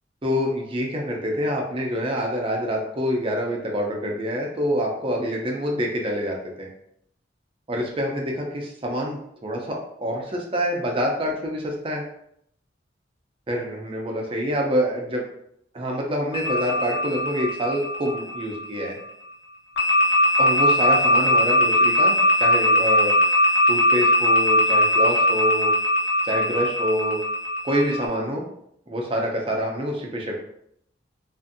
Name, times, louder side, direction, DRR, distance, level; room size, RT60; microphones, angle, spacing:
voice 1, 0.2-6.7 7.7-12.0 13.5-15.2 15.7-19.0 20.4-23.1 23.7-25.7 26.2-27.2 27.6-28.4 28.9-30.4, equal, 30° right, 0 dB, 0.5 m, -26 dB
sound 1, 16.3-18.9 19.8-28.1, left 1 dB, 75° left, 0.8 m, -20 dB
2.5 x 2.5 x 2.6 m, 0.72 s
head